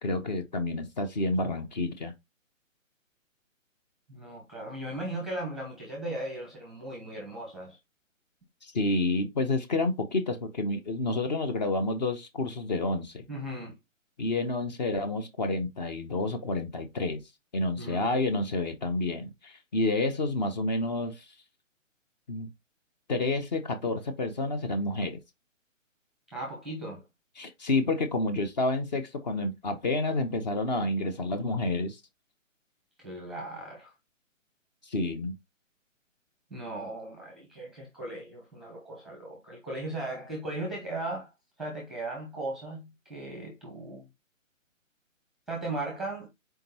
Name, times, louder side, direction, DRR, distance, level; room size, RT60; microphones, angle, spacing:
voice 1, 0.0-2.1 8.6-13.2 14.2-17.2 17.5-21.3 22.3-22.5 23.1-25.2 27.4-32.0 34.8-35.3, left 2 dB, 35° left, 0.8 m, -29 dB
voice 2, 4.1-7.8 13.3-13.8 17.8-18.1 26.3-27.0 33.0-33.9 36.5-41.3 41.6-44.1 45.5-46.3, right 2 dB, ahead, 0.8 m, -37 dB
4.4 x 3.7 x 2.8 m
figure-of-eight pair, 145°, 40 cm